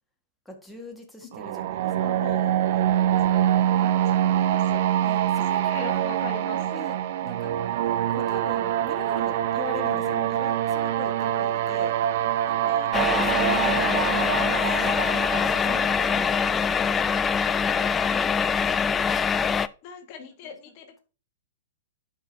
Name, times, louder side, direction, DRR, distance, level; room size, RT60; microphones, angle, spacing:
voice 1, 0.4-2.2 5.0-7.5 8.1-12.0 12.5-15.6 16.1-16.6 17.7-18.9 20.4-20.7, left 2 dB, ahead, 0 dB, 1.5 m, -42 dB
sound 1, 1.3-17.2, right 11 dB, 55° right, 0.6 m, -25 dB
voice 2, 2.0-4.8 5.5-6.8 9.7-10.3 11.4-11.9 12.7-12.9 15.7-16.2 19.8-21.0, left 7 dB, 45° left, 5 dB, 1.3 m, -42 dB
sound 2, 12.9-19.7, left 6 dB, 20° left, 0.3 m, -24 dB
11.5 x 5.2 x 2.7 m, 0.35 s
hypercardioid pair, 110°, 0 cm